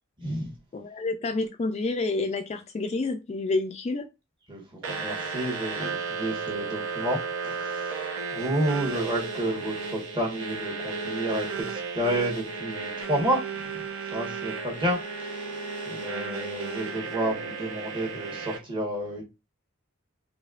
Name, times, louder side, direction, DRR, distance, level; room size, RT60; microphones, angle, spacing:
voice 1, 0.7-4.1, left 3 dB, 30° left, 0.3 m, -29 dB
voice 2, 4.5-7.2 7.4-7.9 8.3-13.4 14.1-15.0 15.3-15.5 15.9-19.2, right 1 dB, 25° right, 1.2 m, -30 dB
sound 1, 4.8-18.6, right 5 dB, 65° right, 0.9 m, -34 dB
4.1 x 2.9 x 2.4 m
head